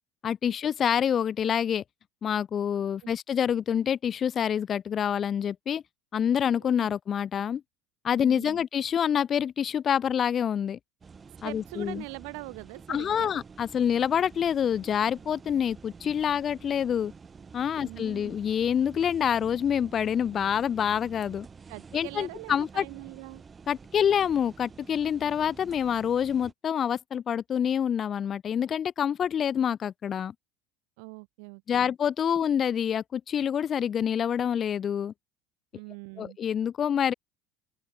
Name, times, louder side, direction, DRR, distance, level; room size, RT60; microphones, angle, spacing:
voice 1, 0.2-1.8 2.2-5.8 6.1-7.6 8.0-10.8 11.4-12.0 12.9-17.1 17.5-21.5 21.9-22.8 23.7-30.3 31.7-35.1 36.2-37.1, left 8 dB, 40° left, 0.6 m, -27 dB
voice 2, 2.7-3.1 6.6-6.9 8.2-8.6 11.4-13.4 17.8-18.3 21.7-23.4 31.0-31.9 32.3-32.4 35.7-36.4, right 39 dB, 70° right, 1.0 m, -43 dB
sound 1, 11.0-26.5, right 5 dB, 25° right, 7.0 m, -49 dB
open air
hypercardioid pair, 90°, 0 cm